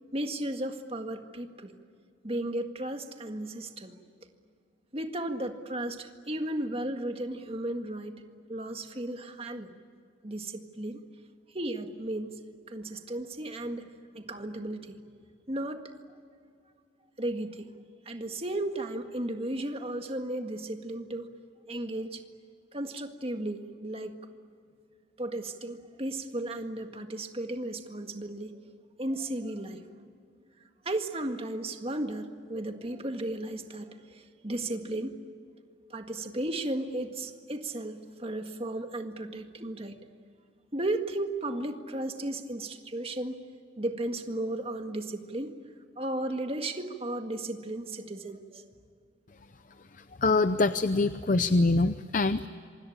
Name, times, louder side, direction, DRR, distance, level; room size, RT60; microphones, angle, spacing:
voice 1, 0.1-1.7 2.2-3.9 4.9-8.2 8.5-9.7 10.2-11.0 11.5-12.3 12.7-13.9 14.1-15.0 15.5-15.9 17.2-17.7 18.1-21.3 21.7-22.2 22.7-24.2 25.2-28.6 29.0-29.8 30.9-35.1 35.9-40.0 40.7-43.4 43.8-45.5 46.0-48.6, right 1 dB, 30° right, 6 dB, 1.8 m, -34 dB
voice 2, 50.0-52.5, left 3 dB, 45° left, 12 dB, 0.6 m, -25 dB
27.0 x 25.0 x 8.8 m, 2.2 s
head